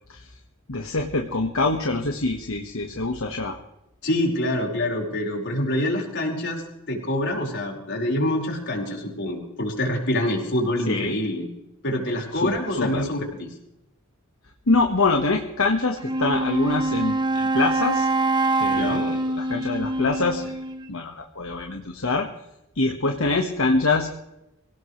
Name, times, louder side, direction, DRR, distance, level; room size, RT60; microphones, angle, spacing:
voice 1, 0.7-3.6 10.9-11.1 12.4-13.0 14.7-18.1 18.6-20.6 20.9-22.3 22.7-24.1, left 3 dB, 75° left, 3 dB, 1.6 m, -24 dB
voice 2, 4.0-11.5 11.8-13.5 18.7-19.1, left 1 dB, 55° left, 0 dB, 5.0 m, -26 dB
Wind instrument woodwind instrument, 16.0-20.9, right 2 dB, 20° right, 1.0 m, -24 dB
24.5 x 17.0 x 3.3 m, 0.88 s
head